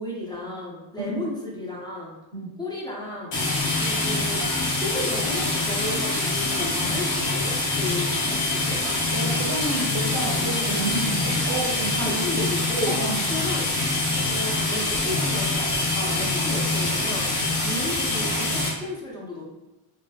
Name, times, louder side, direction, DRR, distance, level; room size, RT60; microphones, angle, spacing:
voice 1, 0.0-2.2 2.6-3.4 3.8-4.5 4.8-8.8 11.9-13.0 13.3-13.7 14.1-17.3 17.6-19.5, left 1 dB, 10° left, -5 dB, 0.5 m, -33 dB
sound 1, 3.3-18.7, left 2 dB, 65° left, 1.0 m, -25 dB
sound 2, 3.6-4.1 4.4-4.7 5.1-5.3 5.7-5.8 6.6-7.0 8.1-8.2 8.8-9.3, right 3 dB, 55° right, 0.6 m, -41 dB
voice 2, 9.1-12.2 12.8-13.2, right 1 dB, 30° right, -3 dB, 0.8 m, -30 dB
2.7 x 2.0 x 2.3 m, 0.96 s
cardioid pair, 110°, 47 cm